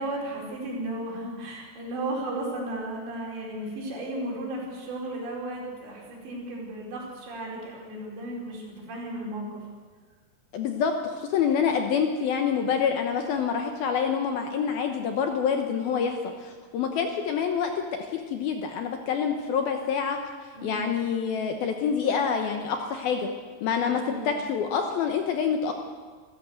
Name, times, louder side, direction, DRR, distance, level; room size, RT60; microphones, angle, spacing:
voice 1, 0.0-9.7 20.5-21.0 23.8-24.4, right 1 dB, 65° right, -2 dB, 6.9 m, -34 dB
voice 2, 10.5-20.2 20.6-23.3 23.6-25.7, left 6 dB, 70° left, 4 dB, 2.5 m, -27 dB
26.5 x 14.0 x 7.9 m, 1.5 s
omnidirectional pair, 5.4 m